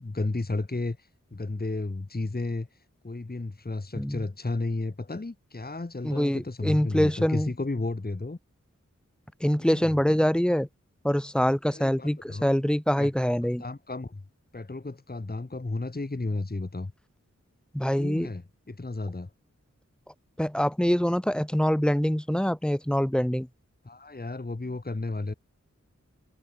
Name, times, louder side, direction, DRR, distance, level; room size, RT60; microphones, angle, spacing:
voice 1, 0.0-2.7 3.0-8.4 9.6-9.9 11.7-12.5 13.0-13.3 13.6-14.2 14.5-16.9 18.0-19.3 23.8-25.3, left 2 dB, 30° left, 1.5 m, -33 dB
voice 2, 3.9-4.2 6.0-7.5 9.4-10.7 11.0-13.6 17.7-18.3 20.4-23.5, equal, 5° left, 0.8 m, -25 dB
wide cardioid pair, 60°, 29 cm